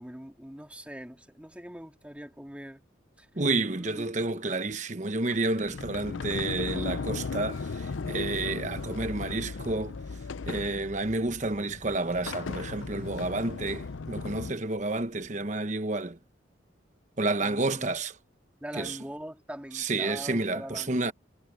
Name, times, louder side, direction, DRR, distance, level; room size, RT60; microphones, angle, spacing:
voice 1, 0.0-2.8 3.2-3.5 3.7-4.4 17.4-17.9 18.6-21.1, equal, 5° right, 2.1 m, -43 dB
voice 2, 3.3-9.9 10.5-16.2 17.2-18.1 18.8-19.0 19.7-21.1, right 2 dB, 40° right, 1.1 m, -30 dB
Sliding door, 5.3-14.5, left 4 dB, 90° left, 0.6 m, -36 dB
sound 1, 11.2-14.2 14.7-15.7, equal, 30° left, 3.3 m, -54 dB
head